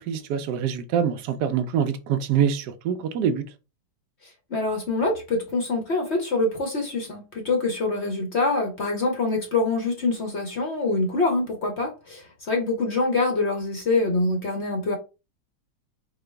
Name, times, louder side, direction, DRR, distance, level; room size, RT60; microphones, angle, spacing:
voice 1, 0.0-3.4, right 8 dB, 70° right, 1.0 m, -25 dB
voice 2, 4.2-15.0, left 3 dB, 50° left, 0.8 m, -25 dB
4.8 x 2.3 x 3.3 m
omnidirectional pair, 2.2 m